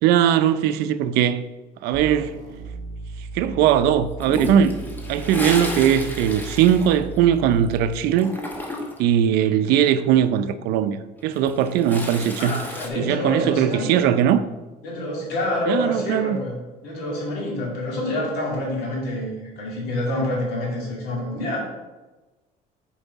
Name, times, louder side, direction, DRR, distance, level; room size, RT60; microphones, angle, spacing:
voice 1, 0.0-1.4 1.8-2.4 3.3-4.7 5.1-8.3 9.0-12.6 13.0-14.4 15.7-16.4, right 9 dB, 85° right, 0.5 m, -20 dB
sound 1, 1.9-8.1, right 3 dB, 50° right, 1.3 m, -36 dB
Toilet flush, 4.2-7.7 7.9-9.1 11.2-12.9, left 1 dB, 10° left, 1.0 m, -32 dB
voice 2, 12.4-14.2 14.8-21.6, left 1 dB, 85° left, 2.3 m, -27 dB
7.0 x 4.7 x 4.1 m
cardioid pair, 140°, 16 cm